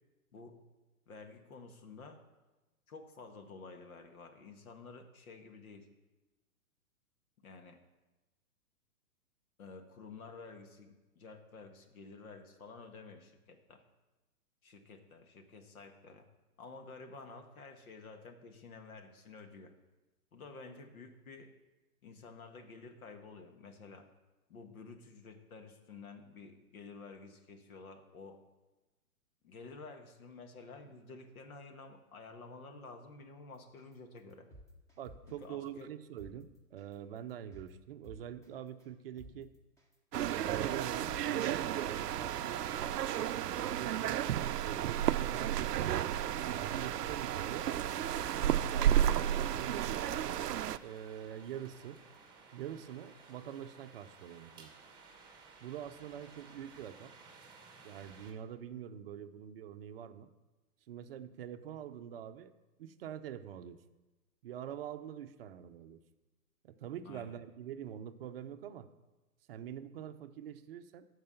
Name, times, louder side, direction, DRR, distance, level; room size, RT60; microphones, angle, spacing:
voice 1, 1.1-2.2 2.9-5.9 7.4-7.8 9.6-13.8 14.6-16.3 16.6-19.7 20.3-21.5 22.0-24.1 24.5-28.4 29.4-34.5 35.4-35.9 67.0-67.4, left 4 dB, 65° left, 6 dB, 1.7 m, -51 dB
sound 1, 33.8-33.9 34.3-35.4 35.8-35.9 36.2-36.3 36.8-36.9 37.3-37.7 38.0-38.5 38.8-38.9 39.2-39.3 39.8-39.9 40.3-41.4 41.8-41.9 42.2-42.3 42.8-42.9 43.3-43.7 44.0-44.9 45.2-45.3 45.8-45.9 46.3-47.4 47.8-47.9 48.2-48.3 48.8-48.9 49.3-49.7 50.0-50.5 50.8-50.9, right 1 dB, 5° left, 1.2 m, -53 dB
voice 2, 35.0-39.5 40.2-44.2 44.6-46.0 46.5-47.7 48.4-52.0 52.5-54.7 55.6-57.1 57.8-60.3 60.9-62.5 62.8-63.8 64.4-66.0 66.6-68.9 69.5-71.1, right 10 dB, 40° right, 10 dB, 0.6 m, -45 dB
sound 2, 40.1-50.8, right 11 dB, 90° right, 0.5 m, -32 dB
sound 3, 48.0-58.3, right 4 dB, 10° right, 1.4 m, -56 dB
14.0 x 4.8 x 5.6 m, 1.1 s
hypercardioid pair, 135°, 46 cm